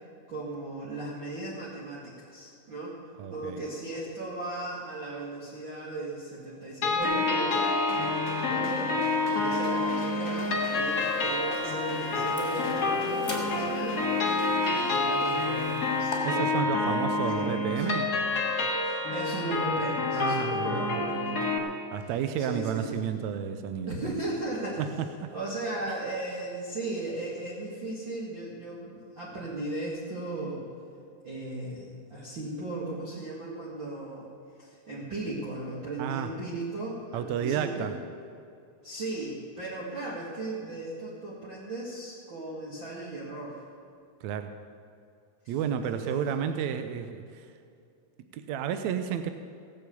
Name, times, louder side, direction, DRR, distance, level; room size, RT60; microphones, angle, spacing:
voice 1, 0.3-3.0 3.3-7.6 7.9-14.1 14.7-17.9 18.8-21.6 22.4-23.0 23.9-24.8 25.3-30.6 31.2-34.3 34.6-37.9 38.8-43.6 45.8-46.3, right 2 dB, 40° right, -6 dB, 2.4 m, -37 dB
voice 2, 3.2-3.6 16.2-18.1 20.2-21.0 21.9-24.2 24.8-25.3 36.0-36.3 37.1-37.9 44.2-44.6 45.5-47.5 48.3-49.3, right 8 dB, 80° right, 9 dB, 1.8 m, -31 dB
sound 1, 6.8-21.6, left 2 dB, 40° left, 1.5 m, -28 dB
sound 2, 7.0-15.0, left 3 dB, 80° left, 0.7 m, -39 dB
sound 3, 10.4-16.2, left 2 dB, 10° left, 2.8 m, -45 dB
17.5 x 7.1 x 8.3 m, 2.5 s
omnidirectional pair, 3.7 m